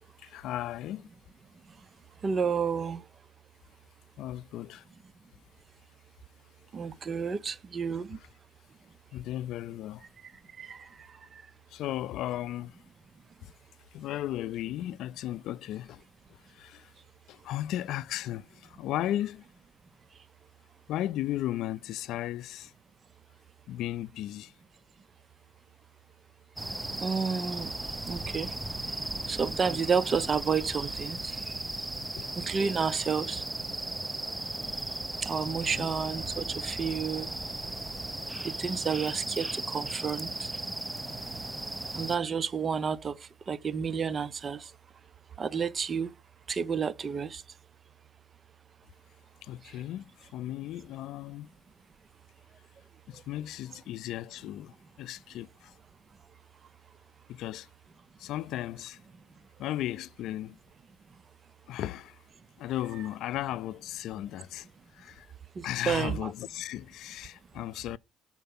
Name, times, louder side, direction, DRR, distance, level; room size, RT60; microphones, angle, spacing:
voice 1, 0.2-1.1 4.2-4.8 9.1-10.1 11.7-12.8 13.4-13.5 13.9-16.0 16.3-16.9 17.3-19.4 20.9-22.7 23.7-24.5 32.1-32.3 35.7-35.9 49.4-51.5 53.1-55.7 57.3-57.7 58.2-59.0 59.6-60.6 61.7-62.2 62.6-64.7 64.9-65.3 65.6-68.0, left 13 dB, 75° left, 0.3 m, -35 dB
voice 2, 2.2-3.0 6.7-8.2 10.6-10.8 27.0-27.7 28.1-28.5 29.3-31.4 32.4-33.4 35.2-37.3 38.4-40.3 41.9-43.2 43.5-44.6 45.4-46.1 46.5-47.4 65.6-66.3, right 6 dB, 40° right, 0.7 m, -30 dB
sound 1, 26.6-42.2, right 2 dB, 10° right, 0.9 m, -36 dB
6.8 x 4.4 x 5.5 m
cardioid pair, 90°, 0 cm